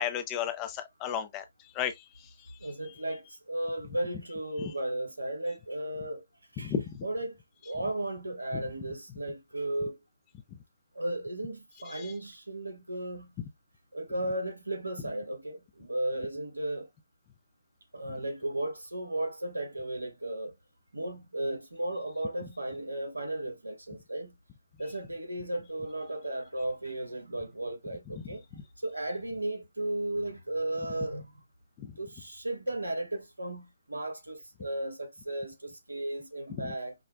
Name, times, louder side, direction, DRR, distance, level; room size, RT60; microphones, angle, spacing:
voice 1, 0.0-1.4 1.7-2.6 4.6-4.7 6.6-7.0 8.5-8.6 11.9-12.1 31.8-31.9 36.5-36.7, left 8 dB, 25° left, 0.5 m, -34 dB
voice 2, 2.6-6.2 6.5-6.7 7.0-7.4 7.6-10.0 10.9-13.3 13.9-16.9 17.9-20.5 20.9-24.4 24.8-28.4 28.8-31.4 32.0-36.9, right 1 dB, 90° right, 1.0 m, -35 dB
4.9 x 2.1 x 2.3 m
figure-of-eight pair, 140°, 0 cm